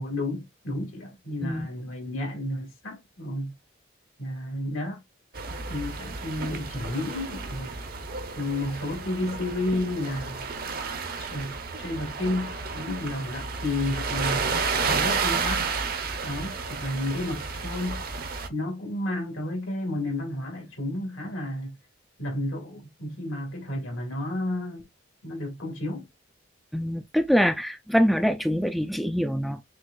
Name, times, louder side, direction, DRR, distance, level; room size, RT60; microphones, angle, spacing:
voice 1, 0.0-3.5 4.2-5.0 5.5-7.8 8.3-10.5 11.2-14.5 14.9-15.7 16.2-18.0 18.5-21.8 22.2-24.8 25.2-26.1, left 1 dB, 85° left, 2.1 m, -31 dB
sound 1, 5.3-18.5, right 4 dB, 45° right, 0.7 m, -31 dB
voice 2, 26.7-29.6, equal, ahead, 0.3 m, -24 dB
6.3 x 2.5 x 2.3 m
head